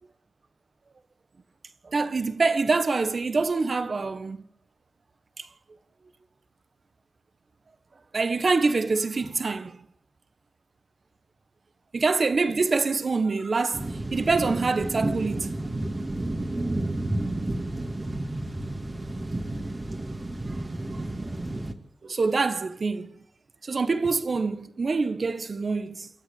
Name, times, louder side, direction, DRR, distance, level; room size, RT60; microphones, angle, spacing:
voice 1, 1.8-4.4 5.4-5.5 8.1-9.8 11.9-13.9 14.1-15.5 20.8-21.0 22.0-23.1 23.6-26.1, right 4 dB, 55° right, 1.4 m, -25 dB
sound 1, 13.7-21.7, right 1 dB, 30° right, 2.4 m, -31 dB
29.0 x 13.5 x 8.7 m
wide cardioid pair, 85°, 0 cm